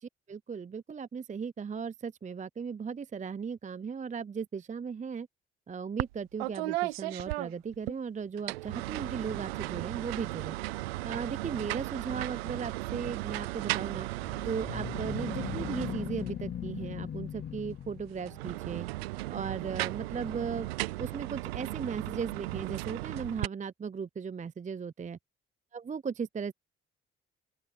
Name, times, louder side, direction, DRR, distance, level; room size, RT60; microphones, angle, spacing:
voice 1, 0.0-5.3 5.7-10.6 11.0-14.1 14.4-18.9 19.3-20.7 21.0-25.2 25.7-26.5, right 6 dB, 25° right, 0.5 m, -37 dB
sound 1, 6.0-6.1 6.4-8.0 8.4-16.4 18.2-23.5, right 19 dB, 90° right, 0.6 m, -36 dB
sound 2, 14.2-18.6, left 9 dB, 35° left, 0.5 m, -39 dB
open air
hypercardioid pair, 45°, 29 cm